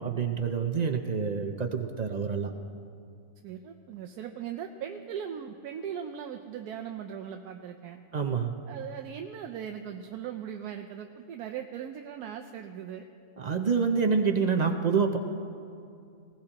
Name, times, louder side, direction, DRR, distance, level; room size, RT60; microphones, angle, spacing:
voice 1, 0.0-2.5 8.1-8.5 13.4-15.2, right 5 dB, 65° right, 5 dB, 0.4 m, -27 dB
voice 2, 3.4-8.0 8.7-13.1, right 8 dB, 90° right, 4 dB, 1.2 m, -39 dB
19.5 x 17.0 x 2.9 m, 2.5 s
omnidirectional pair, 1.6 m